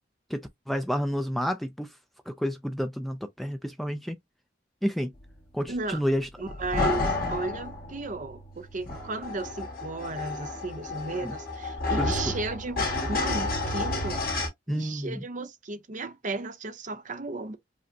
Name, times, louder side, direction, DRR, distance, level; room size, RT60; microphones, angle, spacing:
voice 1, 0.3-1.9 2.3-4.2 4.8-5.1 5.5-6.3 11.2-11.3 12.0-12.2 14.7-15.2, equal, ahead, 0.4 m, -30 dB
voice 2, 5.7-6.0 6.4-14.2 14.7-17.6, right 3 dB, 45° right, 0.7 m, -35 dB
sound 1, 6.5-14.5, left 2 dB, 55° left, 2.1 m, -31 dB
4.9 x 2.1 x 2.6 m
head